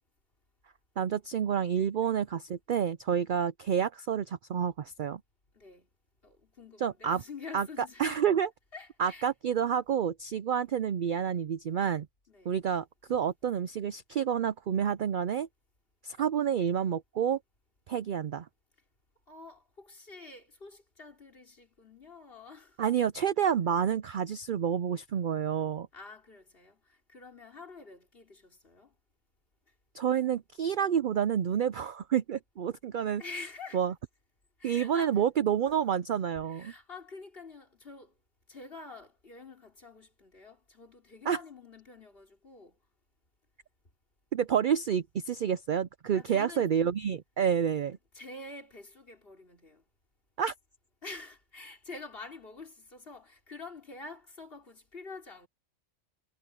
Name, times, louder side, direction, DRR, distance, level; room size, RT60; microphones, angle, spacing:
voice 1, 1.0-5.2 6.8-7.2 7.5-7.7 8.0-8.5 9.0-12.1 12.5-15.5 16.0-17.4 17.9-18.5 22.8-25.9 29.9-33.2 33.7-33.9 34.6-36.7 41.3-41.4 44.3-48.0 50.4-50.5, right 8 dB, 60° right, 0.5 m, -29 dB
voice 2, 5.5-5.9 6.2-8.3 8.7-9.3 12.3-12.6 19.3-22.8 25.9-28.9 33.2-33.8 34.6-35.2 36.4-38.1 38.5-42.8 46.1-46.7 47.9-49.8 51.0-55.5, left 3 dB, 45° left, 3.7 m, -47 dB
omnidirectional pair, 1.4 m